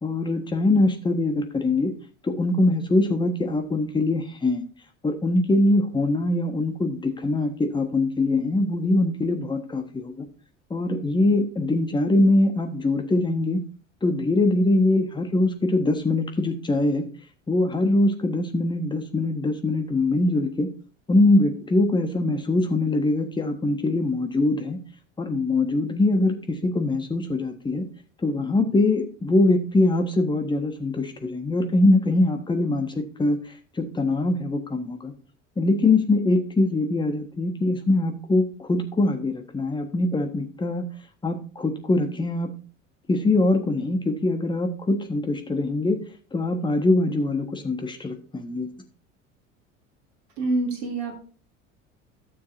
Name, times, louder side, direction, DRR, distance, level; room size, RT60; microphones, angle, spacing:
voice 1, 0.0-1.9 2.2-4.6 5.0-10.3 10.7-13.6 14.0-17.0 17.5-20.7 21.1-24.8 25.2-26.4 26.6-27.8 28.2-33.4 33.8-35.1 35.6-40.8 41.2-42.5 43.1-46.0 46.3-48.7, left 2 dB, 10° left, 5 dB, 1.4 m, -23 dB
voice 2, 50.4-51.2, right 2 dB, 55° right, 1 dB, 3.0 m, -26 dB
13.0 x 7.0 x 2.7 m, 0.39 s
figure-of-eight pair, 70°, 37 cm